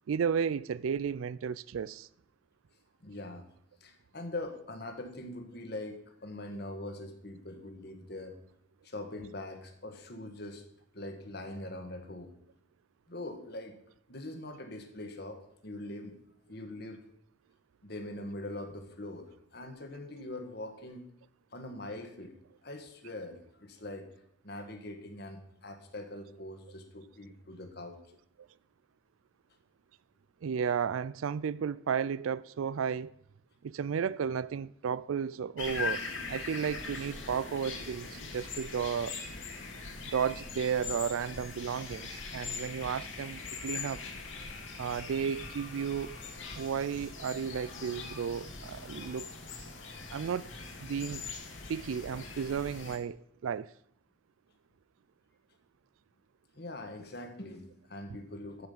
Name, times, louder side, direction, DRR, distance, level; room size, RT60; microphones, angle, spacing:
voice 1, 0.1-2.1 30.4-33.1 33.6-39.2 40.0-44.0 44.8-46.2 46.5-49.3 50.1-50.5 50.8-51.2 51.7-53.7, right 7 dB, 90° right, 0.4 m, -33 dB
voice 2, 3.0-3.5 3.8-8.4 8.8-10.6 10.9-12.3 13.1-13.8 14.1-16.2 16.5-17.0 17.8-21.1 21.5-22.4 22.6-24.1 24.4-28.0 56.5-58.7, left 1 dB, 50° left, 1.7 m, -42 dB
sound 1, 35.6-53.0, left 4 dB, 70° left, 2.2 m, -41 dB
13.5 x 5.8 x 6.8 m
head